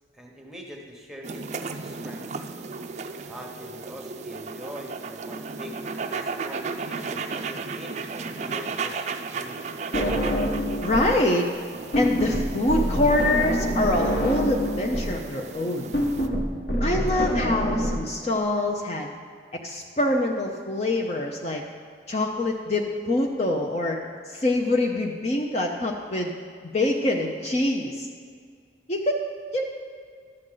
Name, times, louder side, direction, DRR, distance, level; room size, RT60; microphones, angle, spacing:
voice 1, 0.1-2.4 3.3-5.7 6.1-9.7, equal, ahead, 0 dB, 1.0 m, -43 dB
sound 1, 1.2-16.3, right 4 dB, 40° right, 0.4 m, -35 dB
sound 2, 9.9-11.2 11.5-17.9, equal, 55° left, 1.3 m, -26 dB
voice 2, 10.8-11.5 12.0-15.9 16.8-19.1 19.6-21.6 22.1-24.0 24.3-26.3 26.7-28.1 28.9-29.2 29.5-29.6, left 1 dB, 35° left, 1 dB, 0.5 m, -25 dB
11.5 x 7.7 x 3.8 m, 2.1 s
head